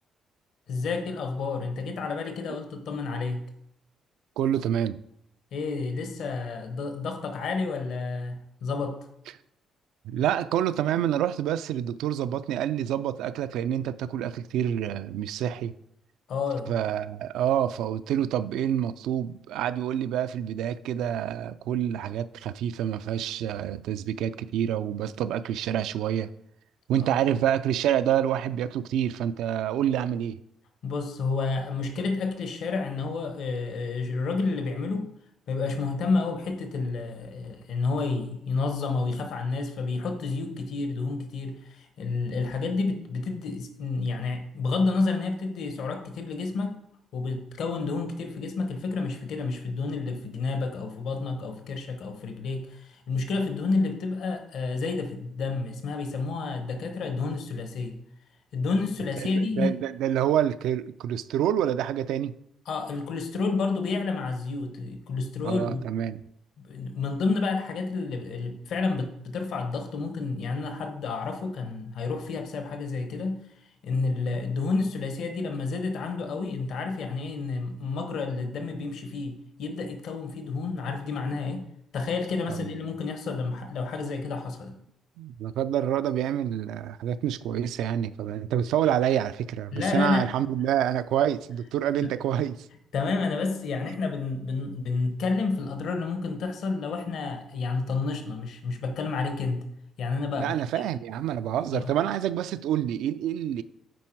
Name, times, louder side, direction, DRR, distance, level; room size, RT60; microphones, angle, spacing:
voice 1, 0.7-3.4 5.5-9.1 16.3-16.7 30.8-35.1 35.5-46.8 47.1-58.0 58.5-59.7 62.7-65.8 66.6-73.5 73.8-81.7 81.9-84.8 89.7-90.3 92.0-92.1 92.9-99.6 100.0-100.6 101.7-101.9, left 4 dB, 75° left, 1.0 m, -30 dB
voice 2, 4.4-5.0 10.0-15.7 16.7-26.3 26.9-30.4 59.2-62.3 65.4-66.2 82.5-82.7 85.2-92.7 100.4-103.6, right 10 dB, 85° right, 0.3 m, -27 dB
9.2 x 4.4 x 4.6 m
cardioid pair, 90°, 0 cm